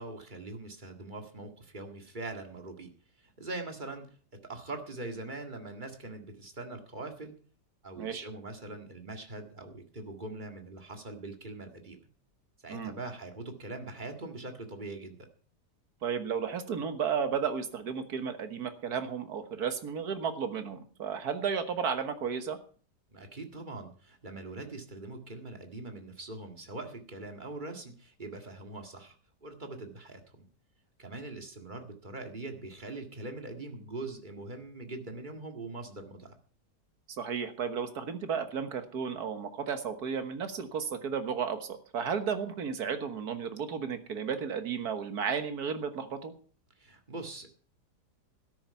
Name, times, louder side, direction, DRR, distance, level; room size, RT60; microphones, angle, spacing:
voice 1, 0.0-2.9 3.2-4.1 4.4-7.3 7.8-12.0 12.6-15.2 23.1-29.2 29.4-30.2 31.0-36.3 46.8-47.7, right 2 dB, 30° right, 4 dB, 2.0 m, -42 dB
voice 2, 8.0-8.3 12.7-13.0 16.0-22.6 37.1-46.3, right 6 dB, 65° right, 8 dB, 1.8 m, -33 dB
13.0 x 10.5 x 5.6 m, 0.43 s
omnidirectional pair, 1.8 m